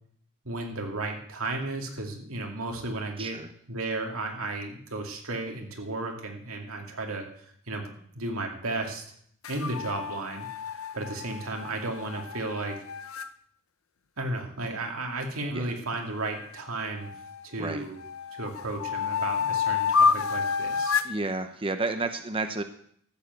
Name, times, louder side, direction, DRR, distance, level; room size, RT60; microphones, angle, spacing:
voice 1, 0.4-3.4 3.7-9.0 9.5-12.8 14.2-17.1 17.4-18.0 18.3-21.0, right 2 dB, 85° right, 2 dB, 2.4 m, -34 dB
voice 2, 3.2-3.5 15.5-15.7 17.6-17.9 21.0-22.6, right 3 dB, 25° right, 8 dB, 0.7 m, -31 dB
sound 1, 9.4-13.3 16.2-17.5 18.0-21.2, left 5 dB, 75° left, 0.7 m, -29 dB
13.5 x 7.3 x 8.1 m, 0.64 s
head